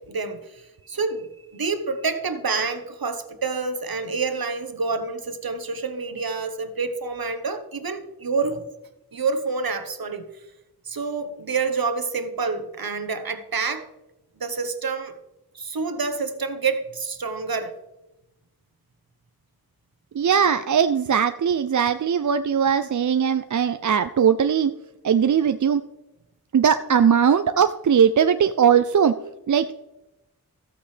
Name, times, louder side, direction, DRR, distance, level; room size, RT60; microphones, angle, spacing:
voice 1, 0.1-1.3 1.5-8.6 9.1-10.2 10.9-13.9 14.4-15.1 15.5-17.7, right 4 dB, 70° right, 8 dB, 1.1 m, -28 dB
voice 2, 20.2-24.7 25.0-25.8 26.5-29.1 29.5-29.7, right 7 dB, 55° right, 10 dB, 0.5 m, -19 dB
14.0 x 8.5 x 3.3 m, 0.97 s
wide cardioid pair, 50°, 37 cm